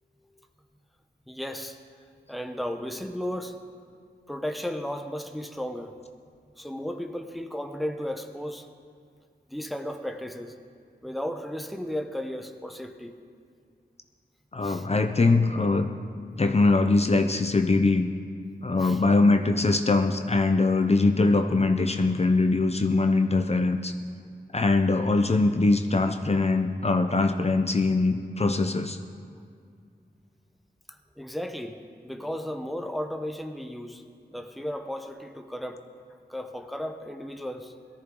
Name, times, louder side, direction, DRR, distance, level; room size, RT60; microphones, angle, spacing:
voice 1, 1.3-1.8 2.3-3.6 4.3-5.9 6.6-8.7 9.5-10.6 11.0-13.1 14.6-14.9 18.8-19.0 31.2-34.0 34.3-35.8 36.3-37.7, equal, ahead, 6 dB, 0.9 m, -34 dB
voice 2, 14.5-15.9 16.4-18.1 18.6-23.9 24.5-29.0, left 3 dB, 35° left, 6 dB, 0.7 m, -22 dB
18.0 x 13.5 x 3.9 m, 2.2 s
wide cardioid pair, 65°, 18 cm